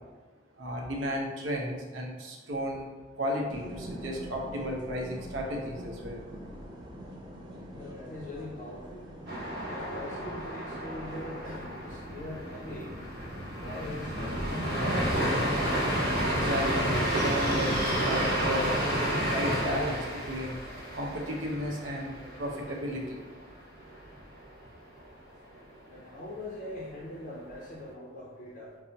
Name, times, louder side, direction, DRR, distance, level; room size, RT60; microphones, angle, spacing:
voice 1, 0.6-2.9 3.2-6.2 16.3-18.7 19.2-20.6 20.9-23.2, equal, 85° right, 0 dB, 0.6 m, -34 dB
sound 1, 3.5-18.3, equal, 25° right, 0.5 m, -43 dB
voice 2, 7.7-9.1 9.6-13.0 13.5-15.2 25.9-28.8, left 1 dB, 40° left, -4 dB, 0.4 m, -42 dB
sound 2, 9.3-23.0 23.3-23.4 23.8-24.4, equal, 55° right, 0.8 m, -31 dB
5.3 x 2.0 x 2.7 m, 1.4 s
head